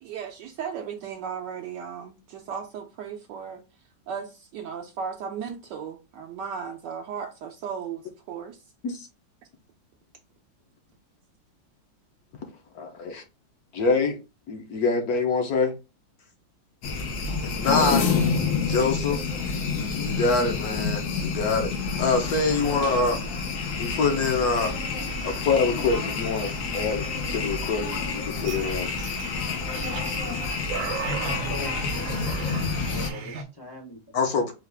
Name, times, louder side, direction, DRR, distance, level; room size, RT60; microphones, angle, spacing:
voice 1, 0.0-3.6 4.1-8.6, right 7 dB, 75° right, 1.2 m, -36 dB
voice 2, 12.7-13.2 13.7-14.2 14.5-15.7 17.4-18.0 18.7-19.2 19.7-23.2 23.8-24.7 25.2-28.9 34.1-34.5, left 4 dB, 60° left, 1.1 m, -25 dB
sound 1, 16.8-33.1, left 4 dB, 90° left, 1.6 m, -28 dB
sound 2, 28.4-33.4, right 5 dB, 60° right, 0.9 m, -35 dB
voice 3, 29.9-30.4 31.3-32.0 32.8-34.0, left 1 dB, 35° left, 0.4 m, -41 dB
4.8 x 2.4 x 3.3 m
omnidirectional pair, 2.0 m